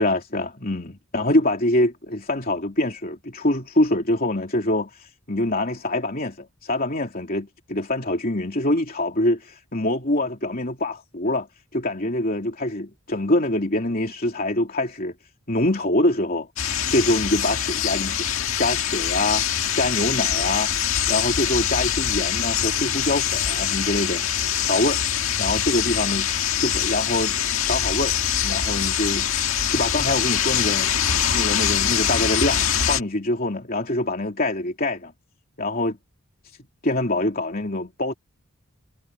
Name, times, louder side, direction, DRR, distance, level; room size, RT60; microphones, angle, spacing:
voice 1, 0.0-11.5 11.7-15.1 15.5-16.5 16.9-19.5 19.7-20.7 21.1-24.2 24.6-25.0 25.4-26.3 26.6-27.4 27.6-28.2 28.4-29.4 29.7-31.0 31.3-35.1 35.6-36.0 36.8-38.1, left 1 dB, 40° left, 3.1 m, -24 dB
sound 1, 16.6-33.0, left 9 dB, 70° left, 1.9 m, -24 dB
head